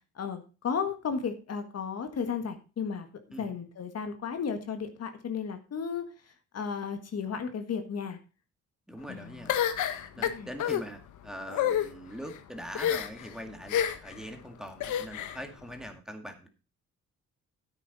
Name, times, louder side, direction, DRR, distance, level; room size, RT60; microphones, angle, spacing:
voice 1, 0.2-3.1 3.4-6.0 6.5-8.2 9.1-9.3 10.2-10.5, left 6 dB, 55° left, 7 dB, 1.7 m, -34 dB
voice 2, 8.9-9.6 10.1-16.5, equal, ahead, 5 dB, 2.1 m, -42 dB
sound 1, 9.5-10.8 11.5-11.9 12.7-13.3 13.7-14.1 14.8-15.4, left 10 dB, 80° left, 1.3 m, -28 dB
10.0 x 9.1 x 4.1 m, 0.33 s
cardioid pair, 90°, 30 cm